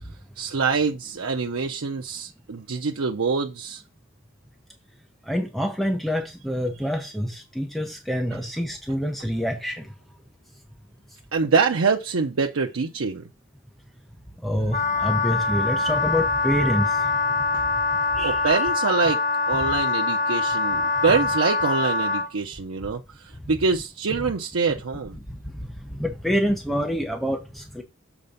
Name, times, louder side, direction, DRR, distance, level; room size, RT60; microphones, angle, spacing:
voice 1, 0.4-3.8 11.3-13.2 18.2-19.2 19.5-25.2, right 5 dB, 85° right, 0.7 m, -25 dB
voice 2, 5.3-9.9 14.4-17.1 18.1-18.6 26.0-27.8, equal, ahead, 0.9 m, -26 dB
Wind instrument woodwind instrument, 14.7-22.3, left 3 dB, 40° left, 2.2 m, -24 dB
7.1 x 4.3 x 5.3 m
head